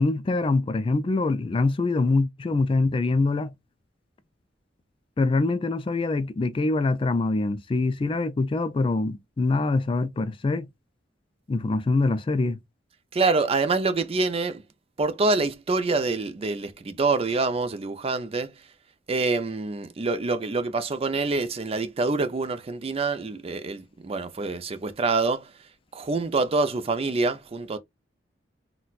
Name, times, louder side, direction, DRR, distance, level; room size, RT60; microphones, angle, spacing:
voice 1, 0.0-3.5 5.2-10.7 11.5-12.6, left 3 dB, 30° left, 0.3 m, -24 dB
voice 2, 13.1-14.6 15.0-18.5 19.1-25.5 25.9-27.8, right 3 dB, 35° right, 0.4 m, -26 dB
4.0 x 2.2 x 2.3 m
head